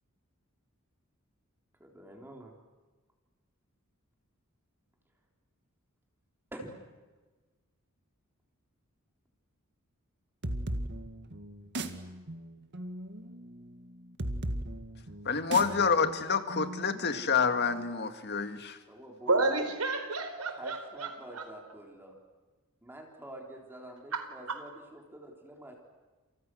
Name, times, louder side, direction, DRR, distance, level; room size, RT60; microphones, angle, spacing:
voice 1, 1.8-2.5 6.5-6.8 18.9-19.4 20.5-22.1 22.8-25.8, right 1 dB, 10° right, 1 dB, 4.0 m, -47 dB
sound 1, 10.4-17.8, right 1 dB, 55° right, 2.0 m, -38 dB
voice 2, 15.3-18.8, left 5 dB, 50° left, 9 dB, 1.9 m, -28 dB
voice 3, 19.3-21.4 24.1-24.6, right 3 dB, 90° right, 8 dB, 4.5 m, -31 dB
29.5 x 28.5 x 6.4 m, 1.3 s
head